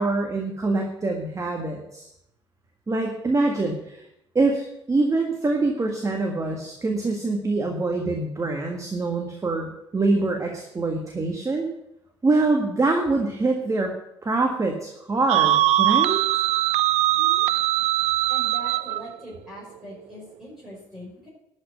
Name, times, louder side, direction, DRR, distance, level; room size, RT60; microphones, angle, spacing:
voice 1, 0.0-2.1 2.9-4.0 4.4-11.7 12.2-13.9 14.2-16.2, right 3 dB, 25° right, 2 dB, 1.7 m, -24 dB
sound 1, 15.3-19.0, right 14 dB, 55° right, 0.5 m, -21 dB
voice 2, 17.1-17.5 18.3-21.3, equal, ahead, -7 dB, 5.5 m, -41 dB
12.0 x 5.5 x 7.9 m, 0.82 s
figure-of-eight pair, 50°, 14 cm